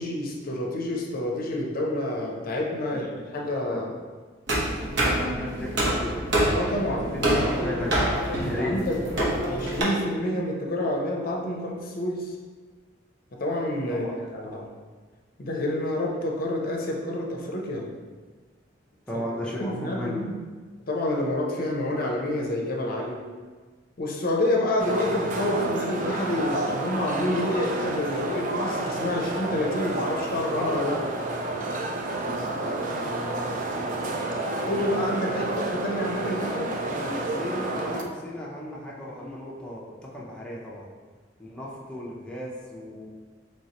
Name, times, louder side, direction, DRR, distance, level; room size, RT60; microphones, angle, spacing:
voice 1, 0.0-3.9 6.5-7.4 8.4-9.0 9.4-12.4 13.3-14.1 14.3-14.7 15.4-17.9 19.6-20.4 20.9-23.3 24.0-31.0 34.6-36.8, left 1 dB, 50° left, -1 dB, 0.6 m, -28 dB
sound 1, 4.5-9.8, right 1 dB, 65° right, 1.0 m, -26 dB
voice 2, 4.7-6.2 6.8-8.2 8.4-8.8 13.9-14.2 19.1-20.3 32.0-33.5 35.4-35.6 36.7-40.9 41.4-43.1, left 1 dB, 5° left, -5 dB, 0.5 m, -36 dB
sound 2, 24.8-38.0, right 2 dB, 45° right, 0.4 m, -30 dB
4.4 x 3.2 x 2.8 m, 1.4 s
head